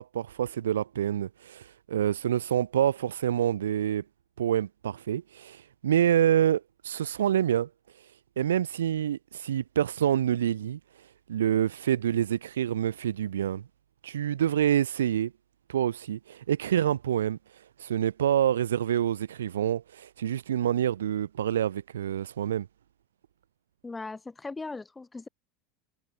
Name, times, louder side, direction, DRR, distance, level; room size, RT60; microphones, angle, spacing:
voice 1, 0.0-4.0 4.4-7.7 7.9-8.1 8.4-13.6 14.0-15.3 15.7-22.7, right 10 dB, 70° right, 1.9 m, -27 dB
voice 2, 23.8-25.3, left 3 dB, 15° left, 2.7 m, -38 dB
figure-of-eight pair, 75°, 0 cm